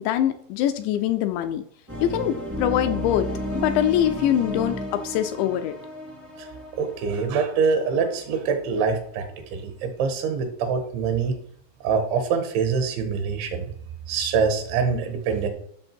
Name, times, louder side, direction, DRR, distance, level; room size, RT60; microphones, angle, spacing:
voice 1, 0.0-1.6 2.0-3.3 3.5-5.7, left 11 dB, 80° left, 7 dB, 2.7 m, -23 dB
sound 1, 1.9-8.7, equal, 10° right, 0.7 m, -33 dB
voice 2, 6.8-9.3 9.5-11.3 11.8-13.7 14.1-15.5, right 5 dB, 75° right, 7 dB, 3.6 m, -24 dB
14.0 x 6.5 x 4.5 m, 0.64 s
omnidirectional pair, 5.5 m